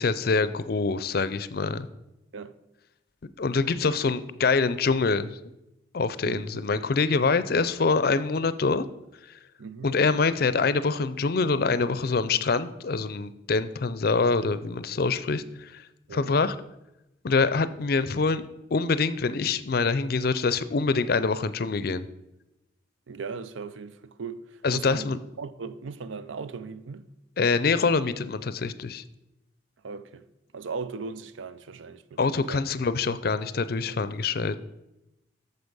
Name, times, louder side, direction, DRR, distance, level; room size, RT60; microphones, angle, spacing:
voice 1, 0.0-1.9 3.4-5.3 5.9-8.8 9.8-15.8 16.1-16.5 17.2-18.4 18.7-22.1 24.6-25.2 27.4-29.0 32.2-34.5, left 4 dB, 55° left, 0.5 m, -25 dB
voice 2, 6.2-6.6 9.6-9.9 16.1-16.4 23.1-27.1 29.8-30.2 30.5-32.6, right 4 dB, 90° right, 0.5 m, -38 dB
8.0 x 6.9 x 5.4 m
head